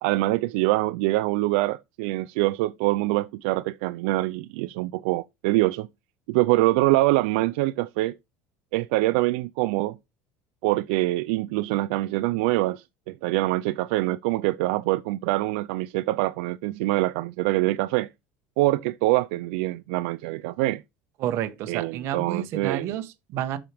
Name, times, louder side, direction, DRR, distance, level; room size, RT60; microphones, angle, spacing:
voice 1, 0.0-5.9 6.3-8.1 8.7-10.0 10.6-18.1 18.6-20.8 21.7-22.9, right 19 dB, 80° right, 0.4 m, -24 dB
voice 2, 21.2-23.6, right 11 dB, 45° right, 1.3 m, -30 dB
7.5 x 6.4 x 3.5 m
cardioid pair, 165°, 6 cm